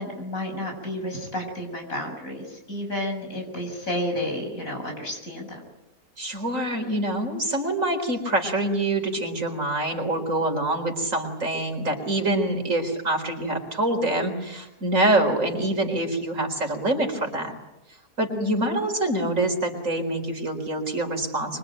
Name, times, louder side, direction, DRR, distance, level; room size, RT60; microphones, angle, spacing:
voice 1, 0.0-5.6 18.3-18.6, left 1 dB, 60° left, 3 dB, 7.5 m, -31 dB
voice 2, 6.2-17.5 18.2-21.6, right 1 dB, 55° right, 4 dB, 4.5 m, -25 dB
25.5 x 24.0 x 9.2 m, 0.95 s
omnidirectional pair, 1.6 m